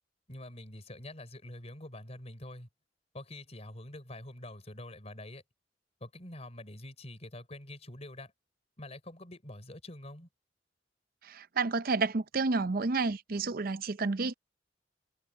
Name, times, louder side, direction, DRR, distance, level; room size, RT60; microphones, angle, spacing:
voice 1, 0.3-2.7 3.1-5.4 6.0-8.3 8.8-10.3, left 1 dB, 35° left, 4.7 m, -46 dB
voice 2, 11.2-14.3, right 3 dB, 55° right, 0.6 m, -30 dB
head